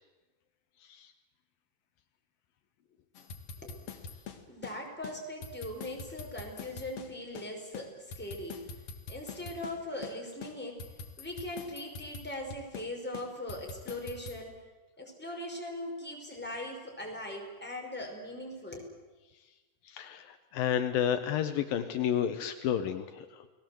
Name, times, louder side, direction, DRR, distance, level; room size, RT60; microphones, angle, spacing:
sound 1, 3.1-4.8 5.0-5.2 5.4-7.5 7.7-9.8 10.0-10.2 10.4-12.9 13.1-14.4, left 5 dB, 50° left, 2.5 m, -44 dB
voice 1, 4.5-8.6 9.1-10.9 11.2-14.6 15.0-18.9, left 1 dB, 5° left, 0 dB, 4.9 m, -40 dB
voice 2, 19.9-23.4, left 9 dB, 75° left, 8 dB, 2.8 m, -31 dB
29.5 x 20.0 x 7.9 m, 1.2 s
omnidirectional pair, 4.2 m